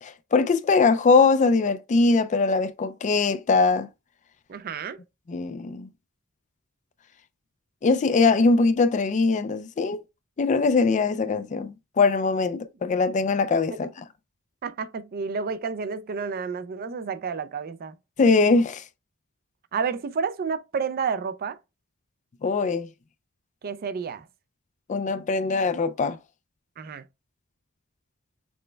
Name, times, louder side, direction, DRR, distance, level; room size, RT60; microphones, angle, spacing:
voice 1, 0.0-3.9 5.3-5.9 7.8-10.0 10.4-13.9 18.2-18.8 22.4-22.9 24.9-26.2, left 4 dB, 35° left, 0.4 m, -21 dB
voice 2, 4.5-5.0 14.6-17.9 19.7-21.6 23.6-24.3 26.8-27.0, right 5 dB, 45° right, 0.4 m, -30 dB
6.1 x 2.2 x 3.2 m
head